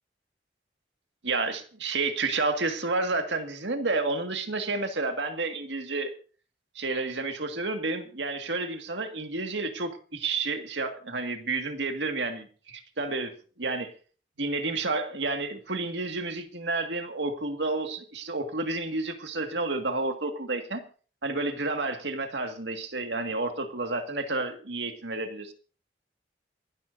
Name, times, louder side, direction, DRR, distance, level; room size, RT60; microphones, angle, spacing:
voice 1, 1.2-6.1 6.8-13.3 13.6-13.9 14.4-20.8 21.2-25.5, right 3 dB, 80° right, 2.0 m, -30 dB
28.0 x 12.0 x 2.7 m
head